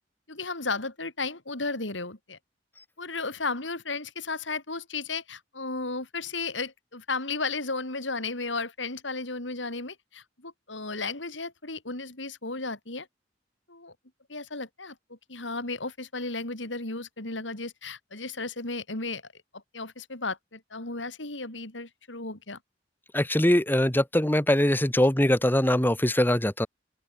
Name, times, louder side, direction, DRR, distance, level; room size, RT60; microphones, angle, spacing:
voice 1, 0.3-2.4 3.0-13.1 13.7-13.9 14.3-19.2 19.5-22.6, left 3 dB, 80° left, 5.0 m, -34 dB
voice 2, 23.1-26.7, left 1 dB, 10° left, 1.5 m, -22 dB
open air
head